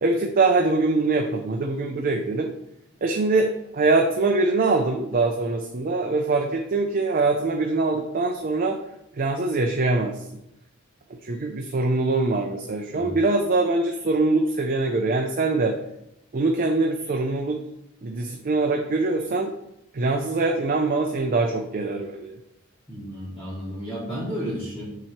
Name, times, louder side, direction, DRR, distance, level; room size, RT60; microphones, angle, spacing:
voice 1, 0.0-2.5 3.0-3.5 3.7-8.8 9.2-10.2 11.2-15.8 16.3-17.6 18.0-19.5 19.9-22.4, right 3 dB, 45° right, 3 dB, 0.5 m, -23 dB
voice 2, 22.9-24.8, equal, 10° left, -8 dB, 1.5 m, -32 dB
7.4 x 2.9 x 4.4 m, 0.83 s
head